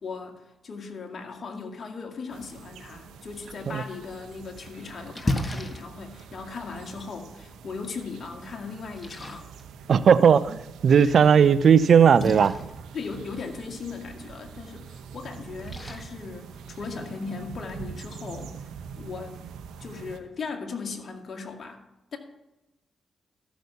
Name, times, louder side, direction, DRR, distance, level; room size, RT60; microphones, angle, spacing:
voice 1, 0.0-9.5 11.0-11.5 12.9-18.6 19.0-19.4 19.8-21.8 22.1-22.2, left 4 dB, 60° left, 3 dB, 2.0 m, -38 dB
sound 1, 2.3-20.2, right 7 dB, 80° right, 0.9 m, -44 dB
Splash splatter, 4.2-17.2, left 1 dB, 25° left, 1.7 m, -38 dB
voice 2, 9.9-12.6, right 7 dB, 65° right, 15 dB, 0.5 m, -17 dB
13.5 x 6.2 x 6.9 m, 0.96 s
supercardioid pair, 45°, 0 cm